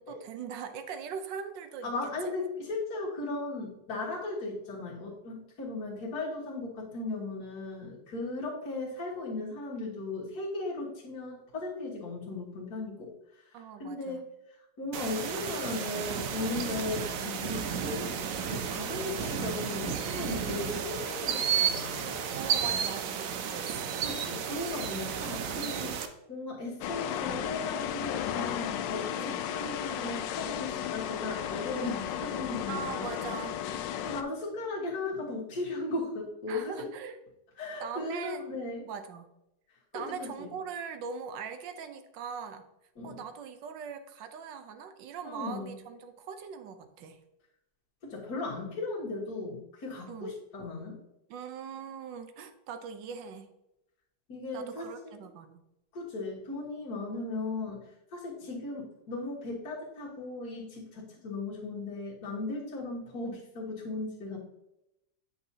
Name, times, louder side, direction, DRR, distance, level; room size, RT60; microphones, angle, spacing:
voice 1, 0.1-1.9 2.2-2.3 13.5-14.2 22.3-24.0 29.1-29.4 32.7-33.6 36.5-37.2 37.8-38.5 38.9-39.3 39.9-42.7 43.0-47.2 50.1-50.3 51.3-53.5 54.5-55.6 57.1-57.2, right 6 dB, 90° right, 9 dB, 1.5 m, -41 dB
voice 2, 1.8-22.2 24.0-26.0 26.3-33.4 34.0-36.9 37.6-38.8 39.9-40.5 43.0-43.2 45.3-45.8 48.0-51.0 54.3-55.2 55.9-64.4, left 2 dB, 60° left, -5 dB, 2.0 m, -37 dB
sound 1, 14.9-26.1, right 7 dB, 65° right, 0.9 m, -32 dB
sound 2, 26.8-34.2, left 10 dB, 85° left, 1.3 m, -34 dB
8.2 x 6.0 x 2.8 m, 0.88 s
omnidirectional pair, 1.9 m